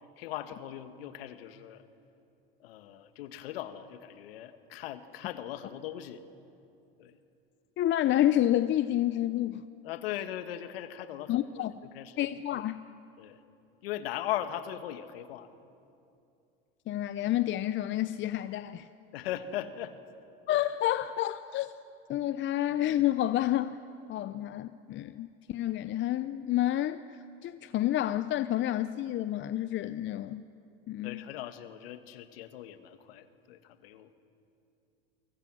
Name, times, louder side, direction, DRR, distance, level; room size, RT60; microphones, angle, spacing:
voice 1, 0.2-1.8 2.6-6.2 7.0-7.2 9.8-12.3 13.2-13.4 13.8-15.5 19.1-20.0 31.0-34.1, left 12 dB, 75° left, 1.6 m, -39 dB
voice 2, 7.8-9.6 11.3-11.7 12.2-12.8 16.9-18.9 20.5-21.7 22.1-23.8 24.1-30.5 30.9-31.2, left 13 dB, 40° left, 0.7 m, -29 dB
28.5 x 24.0 x 6.2 m
hypercardioid pair, 90°, 30 cm